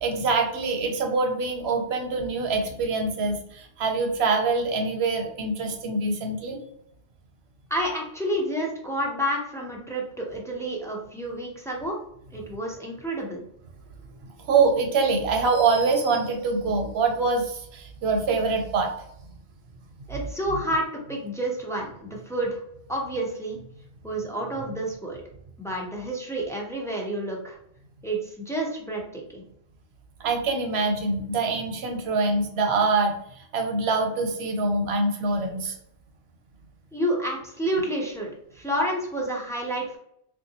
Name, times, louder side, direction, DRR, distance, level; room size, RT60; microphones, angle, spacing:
voice 1, 0.0-6.6 14.2-18.9 30.2-35.7, right 3 dB, 75° right, 3 dB, 0.9 m, -24 dB
voice 2, 7.7-12.0 12.3-13.4 20.1-22.6 22.9-23.6 24.0-25.2 25.6-27.6 28.0-29.4 36.9-40.0, right 1 dB, 5° left, -1 dB, 0.4 m, -29 dB
3.3 x 2.5 x 2.8 m, 0.72 s
omnidirectional pair, 1.1 m